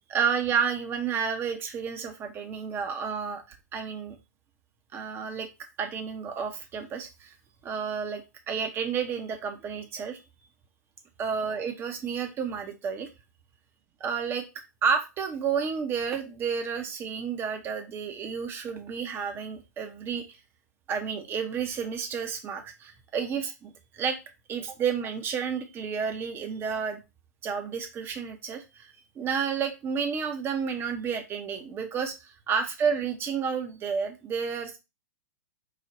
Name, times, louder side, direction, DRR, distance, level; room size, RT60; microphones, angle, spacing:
voice 1, 0.1-4.2 4.9-5.5 5.8-7.3 7.6-10.2 11.2-13.1 14.0-14.4 14.8-20.4 20.9-24.2 24.5-27.0 27.4-34.8, right 6 dB, 25° right, 6 dB, 0.8 m, -31 dB
4.8 x 2.4 x 2.9 m, 0.25 s
figure-of-eight pair, 105°, 10 cm